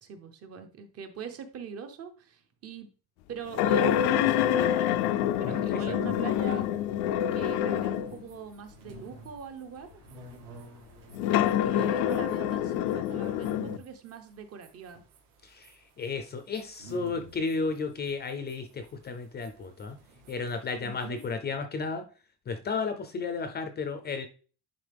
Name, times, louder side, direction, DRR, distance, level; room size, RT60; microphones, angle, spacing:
voice 1, 0.0-2.9 3.3-5.0 5.4-6.7 7.3-10.0 11.3-15.0 20.8-21.2, right 7 dB, 40° right, 7 dB, 0.9 m, -41 dB
sound 1, 3.5-8.2 8.9-9.0 11.1-13.8, left 11 dB, 80° left, 0.6 m, -26 dB
voice 2, 5.4-5.9 15.4-15.7 16.0-20.0 20.3-22.0 22.5-24.3, left 4 dB, 25° left, 8 dB, 0.5 m, -33 dB
sound 2, 8.0-21.3, equal, 75° right, 2.1 m, -50 dB
10.0 x 3.8 x 3.4 m, 0.38 s
cardioid pair, 170°, 39 cm